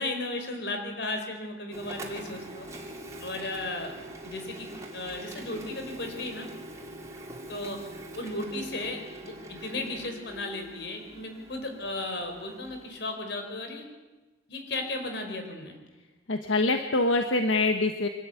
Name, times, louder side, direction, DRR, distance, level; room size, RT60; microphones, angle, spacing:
voice 1, 0.0-2.7 3.2-3.9 4.2-4.7 4.9-6.5 7.5-7.8 8.1-13.8 14.5-15.8, left 2 dB, 60° left, 4 dB, 4.6 m, -35 dB
Printer, 1.7-13.0, right 1 dB, 15° right, 2.9 m, -43 dB
voice 2, 16.3-18.1, left 2 dB, 85° left, 6 dB, 1.3 m, -24 dB
25.0 x 13.0 x 9.4 m, 1.2 s
head